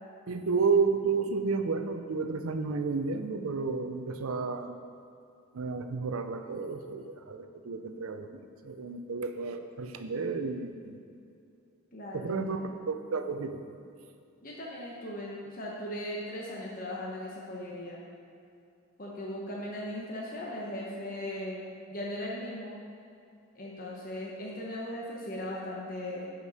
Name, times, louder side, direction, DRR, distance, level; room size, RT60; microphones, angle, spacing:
voice 1, 0.3-4.7 5.5-11.0 12.1-13.6, right 4 dB, 80° right, 7 dB, 0.6 m, -31 dB
voice 2, 11.9-12.8 14.4-18.0 19.0-22.8 23.5-26.3, left 1 dB, 40° left, -4 dB, 1.0 m, -38 dB
10.5 x 5.2 x 4.2 m, 2.6 s
head